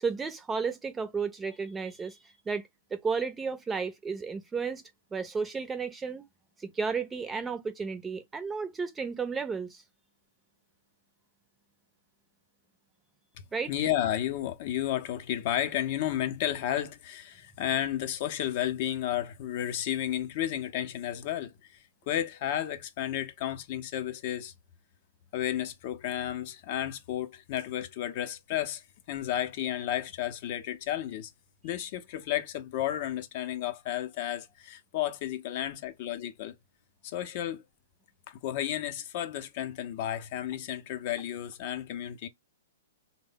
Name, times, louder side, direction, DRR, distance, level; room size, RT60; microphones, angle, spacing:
voice 1, 0.0-2.2 2.5-2.6 2.9-4.8 5.1-6.2 6.6-9.8 13.5-13.7, right 5 dB, 15° right, 0.5 m, -33 dB
voice 2, 13.7-24.5 25.3-31.3 31.6-36.5 37.0-37.6 38.3-42.3, left 11 dB, 45° left, 0.5 m, -32 dB
3.3 x 2.1 x 3.6 m
figure-of-eight pair, 115°, 0 cm